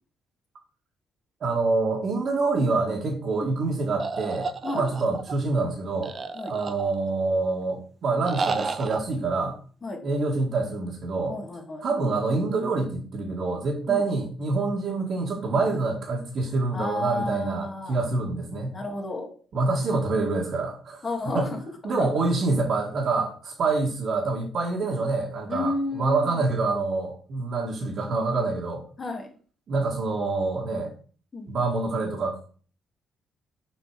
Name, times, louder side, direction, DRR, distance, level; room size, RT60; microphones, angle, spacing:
voice 1, 1.4-4.5 4.7-6.1 6.5-9.6 10.0-11.4 11.8-18.7 19.5-21.1 21.3-21.5 21.8-28.8 29.7-30.9 31.5-32.4, right 3 dB, 60° right, -3 dB, 1.5 m, -26 dB
sound 1, 4.0-5.3 6.0-7.2 8.2-9.0, right 4 dB, 40° right, 0.6 m, -31 dB
voice 2, 11.3-11.8 13.9-14.0 16.7-18.0 18.7-19.3 21.0-21.6 22.0-22.1 24.8-25.0 25.5-26.5 29.0-29.3 31.3-31.5, left 2 dB, 35° left, 3 dB, 1.8 m, -32 dB
6.7 x 3.9 x 4.7 m, 0.43 s
cardioid pair, 90°, 0 cm